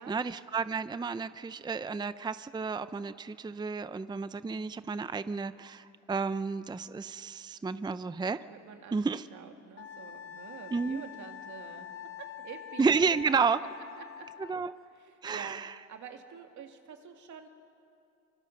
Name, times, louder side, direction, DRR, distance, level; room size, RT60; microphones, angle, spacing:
voice 1, 0.0-8.4 8.9-9.2 10.7-11.0 12.8-13.6 14.4-14.7 15.2-15.7, right 5 dB, 15° right, 14 dB, 0.5 m, -31 dB
voice 2, 8.4-11.9 12.2-13.2 14.0-14.3 14.9-17.5, right 7 dB, 75° right, 5 dB, 2.2 m, -48 dB
Wind instrument woodwind instrument, 9.8-14.6, left 9 dB, 45° left, 1.2 m, -45 dB
25.0 x 24.5 x 6.6 m, 2.5 s
cardioid pair, 90°, 30 cm